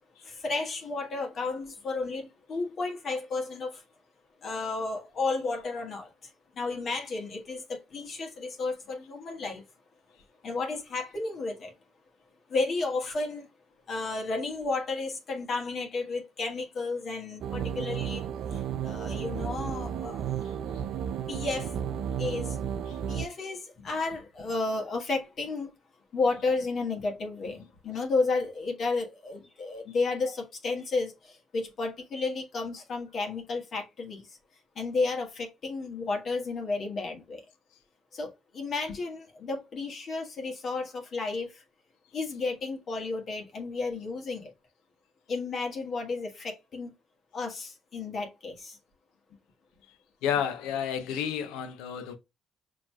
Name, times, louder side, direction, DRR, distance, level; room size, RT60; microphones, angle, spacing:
voice 1, 0.2-3.8 4.4-6.1 6.6-9.6 10.4-11.7 12.5-13.5 13.9-18.2 18.8-20.3 21.3-21.7 22.2-22.6 23.1-25.7 26.1-34.4 34.7-37.4 38.1-41.6 42.1-44.5 45.3-46.9 47.3-48.8, left 3 dB, 55° left, 1.4 m, -32 dB
sound 1, 17.4-23.3, right 8 dB, 65° right, 0.4 m, -33 dB
voice 2, 50.2-52.2, left 8 dB, 75° left, 0.6 m, -30 dB
5.6 x 3.0 x 2.2 m
hypercardioid pair, 50°, 0 cm